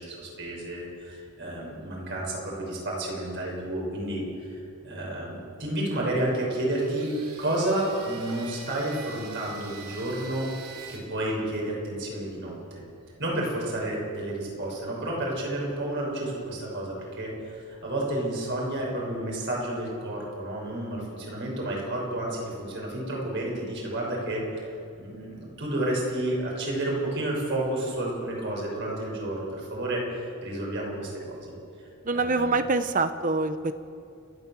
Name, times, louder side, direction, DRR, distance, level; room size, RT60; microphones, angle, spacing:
voice 1, 0.0-4.2 4.8-7.1 7.4-10.5 10.9-12.8 13.2-32.5, right 1 dB, 55° right, -2 dB, 6.4 m, -31 dB
sound 1, 6.6-11.0, right 5 dB, 80° right, 4.0 m, -45 dB
voice 2, 32.1-33.7, right 3 dB, 35° right, 11 dB, 0.8 m, -25 dB
29.0 x 12.0 x 7.4 m, 2.5 s
head